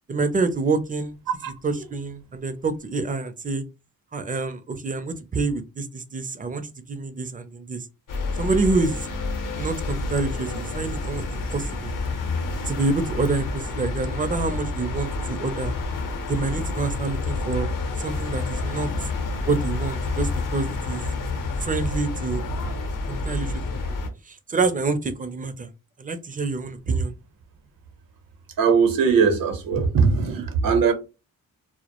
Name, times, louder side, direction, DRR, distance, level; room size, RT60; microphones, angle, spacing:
voice 1, 0.1-1.2 1.5-3.6 4.1-7.8 8.4-9.1 9.6-11.9 12.7-15.7 16.3-17.7 18.0-18.9 19.5-21.1 21.6-22.4 23.1-23.5 23.9-24.0 24.3-25.7 26.0-27.1, right 3 dB, 25° right, 0.4 m, -27 dB
sound 1, 8.1-24.1, left 3 dB, 65° left, 0.7 m, -29 dB
voice 2, 28.6-30.9, right 5 dB, 70° right, 0.7 m, -19 dB
2.1 x 2.0 x 2.9 m
cardioid pair, 80°, 36 cm